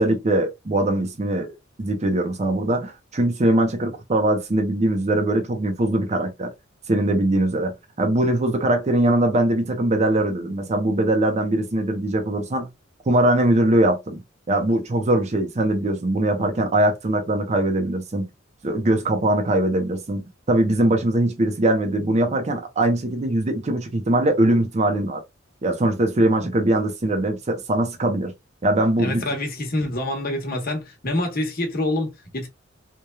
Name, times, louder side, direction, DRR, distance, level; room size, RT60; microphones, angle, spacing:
voice 1, 0.0-1.5 1.8-6.5 6.9-12.7 13.1-14.2 14.5-18.3 18.6-25.2 25.6-28.3 28.6-29.2, right 1 dB, 35° right, 0.6 m, -21 dB
voice 2, 29.0-32.5, left 1 dB, 50° left, 0.9 m, -26 dB
3.0 x 2.2 x 2.2 m
head